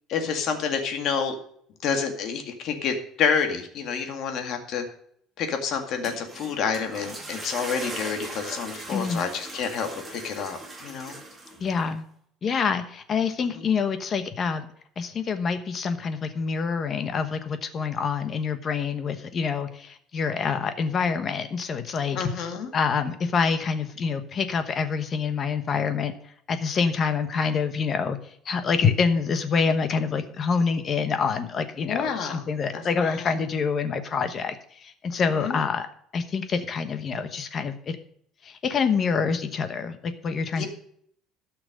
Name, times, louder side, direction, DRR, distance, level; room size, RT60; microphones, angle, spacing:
voice 1, 0.1-1.4 1.8-4.8 5.4-11.2 13.6-13.7 22.2-22.7 31.9-32.4 32.7-33.3 35.3-35.6 40.5-40.7, left 6 dB, 50° left, 5 dB, 1.9 m, -29 dB
sound 1, 5.8-11.9, right 2 dB, 10° right, 2.1 m, -39 dB
voice 2, 8.9-9.2 11.6-12.0 12.4-14.7 15.0-22.2 22.7-26.1 26.5-28.2 28.4-35.9 36.1-38.0 38.4-40.7, left 5 dB, 30° left, 9 dB, 1.0 m, -26 dB
12.5 x 5.9 x 6.6 m, 0.66 s
cardioid pair, 160°, 0 cm